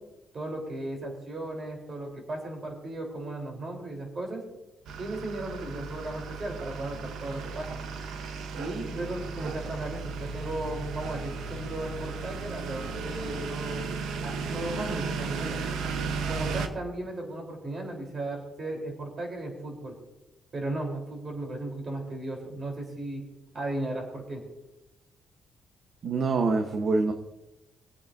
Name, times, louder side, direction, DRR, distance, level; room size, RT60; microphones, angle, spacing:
voice 1, 0.3-4.4 5.0-7.8 8.5-13.9 14.2-15.6 16.3-20.0 20.5-23.2 23.5-24.4, right 2 dB, 40° right, 1 dB, 3.8 m, -35 dB
sound 1, 4.9-16.7, right 4 dB, 80° right, 1.0 m, -35 dB
voice 2, 26.0-27.1, right 3 dB, 60° right, 5 dB, 1.1 m, -25 dB
22.5 x 8.5 x 2.7 m, 0.97 s
cardioid pair, 90°, 0 cm